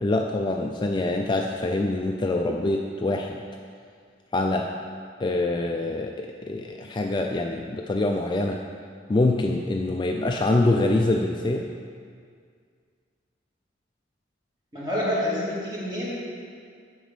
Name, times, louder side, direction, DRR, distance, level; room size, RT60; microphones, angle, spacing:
voice 1, 0.0-3.4 4.3-4.7 5.2-8.6 9.1-11.7, left 2 dB, 25° left, 2 dB, 0.3 m, -25 dB
voice 2, 14.7-16.1, left 1 dB, 20° right, -8 dB, 2.3 m, -27 dB
7.7 x 5.1 x 6.7 m, 2.2 s
head